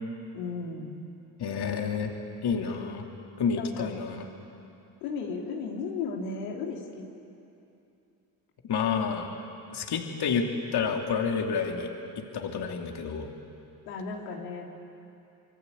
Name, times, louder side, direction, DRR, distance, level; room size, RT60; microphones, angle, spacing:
voice 1, 0.3-1.0 3.6-4.0 5.0-7.1 13.9-14.6, left 4 dB, 90° left, 0 dB, 3.1 m, -35 dB
voice 2, 1.4-2.1 2.4-3.0 3.4-4.2 8.7-9.3 9.7-10.5 10.7-11.9 12.2-13.3, left 6 dB, 50° left, 2 dB, 3.0 m, -29 dB
26.5 x 23.5 x 8.4 m, 2.7 s
supercardioid pair, 70°, 48 cm